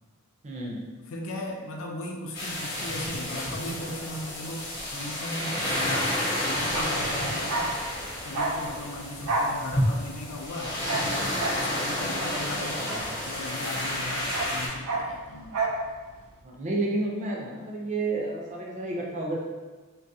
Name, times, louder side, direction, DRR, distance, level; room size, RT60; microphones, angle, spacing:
voice 1, 0.4-0.9 16.4-19.4, right 2 dB, 30° right, -2 dB, 0.4 m, -30 dB
voice 2, 1.1-7.8 8.2-15.7, left 1 dB, 65° left, 1 dB, 0.4 m, -38 dB
sound 1, 2.3-14.7, left 1 dB, 45° left, 0.8 m, -30 dB
Bark, 6.6-13.7 13.9-15.9 16.1-16.3, right 2 dB, 90° right, 0.4 m, -31 dB
3.2 x 2.3 x 2.6 m, 1.3 s
head